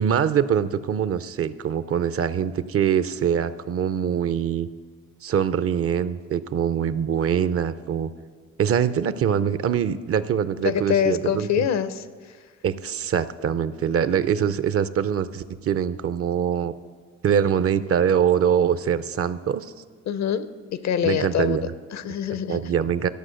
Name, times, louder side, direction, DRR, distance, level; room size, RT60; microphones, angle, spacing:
voice 1, 0.0-4.7 5.2-8.1 8.6-11.5 12.6-16.7 17.2-19.7 21.0-21.7 22.5-23.1, right 8 dB, 50° right, 14 dB, 0.5 m, -23 dB
voice 2, 10.6-12.4 20.1-20.5 20.7-22.6, left 8 dB, 65° left, 14 dB, 0.7 m, -25 dB
12.5 x 6.1 x 6.4 m, 1.5 s
cardioid pair, 65°, 29 cm